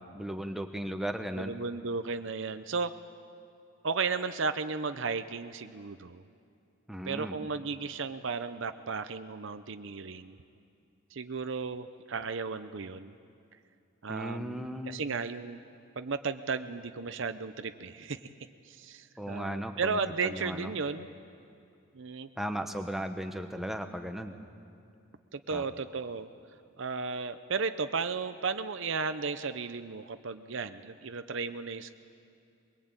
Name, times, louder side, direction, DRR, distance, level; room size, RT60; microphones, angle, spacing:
voice 1, 0.1-1.5 6.9-7.4 14.1-15.0 19.2-20.7 22.4-24.4 25.5-25.6, equal, ahead, 5 dB, 1.1 m, -36 dB
voice 2, 1.4-2.9 3.8-6.2 7.0-10.4 11.1-13.1 14.0-15.6 16.0-18.3 18.6-21.1 21.9-22.3 25.3-26.3 26.8-31.9, right 4 dB, 60° right, 10 dB, 0.6 m, -34 dB
22.5 x 22.0 x 8.9 m, 2.6 s
head